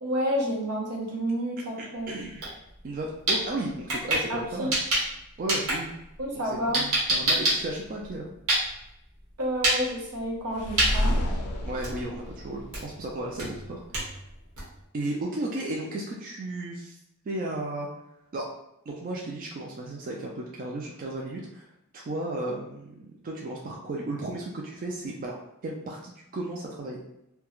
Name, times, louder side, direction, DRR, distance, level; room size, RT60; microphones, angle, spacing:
voice 1, 0.0-2.2 4.3-4.7 6.2-6.8 9.4-11.1, equal, 85° right, -2 dB, 0.8 m, -30 dB
voice 2, 1.8-2.6 2.8-4.8 5.4-5.9 6.7-8.3 11.6-14.1 14.9-17.0 17.2-17.9 18.3-18.5 18.9-21.7 21.9-25.4 25.6-27.0, right 2 dB, 40° right, -1 dB, 0.3 m, -34 dB
sound 1, 2.2-2.5 2.8-5.2 5.5-8.9 9.5-9.8 10.1-10.4 10.8-10.9 11.4-11.5 11.8-12.2 12.7-12.9 13.4-14.8, right 1 dB, 65° right, 1.0 m, -26 dB
sound 2, 10.5-13.5, left 1 dB, 85° left, 0.4 m, -30 dB
2.3 x 2.2 x 2.9 m, 0.83 s
head